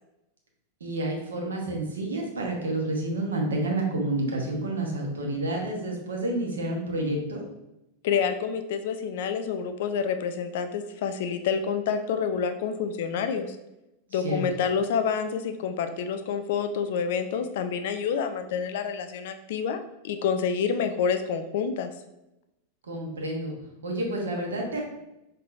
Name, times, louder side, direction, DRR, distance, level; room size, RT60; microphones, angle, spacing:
voice 1, 0.8-7.4 14.1-14.4 22.9-23.5 23.8-24.8, right 2 dB, 70° right, 0 dB, 1.1 m, -29 dB
voice 2, 8.0-13.6 14.1-21.9, left 6 dB, 55° left, 9 dB, 0.3 m, -28 dB
5.5 x 3.3 x 2.4 m, 0.90 s
figure-of-eight pair, 90°, 0 cm